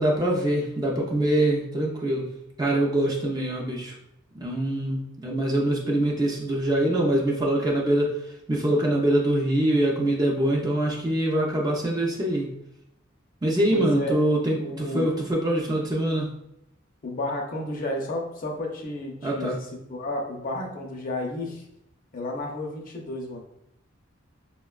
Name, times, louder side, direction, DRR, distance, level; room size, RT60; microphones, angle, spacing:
voice 1, 0.0-4.0 4.3-8.2 8.5-12.5 13.4-16.4 19.2-19.6, right 1 dB, 20° right, -2 dB, 0.5 m, -24 dB
voice 2, 13.7-14.2 14.6-15.1 17.0-19.5 19.9-21.6 22.1-23.4, left 1 dB, 45° left, 0 dB, 0.5 m, -31 dB
4.2 x 2.1 x 2.3 m, 0.78 s
head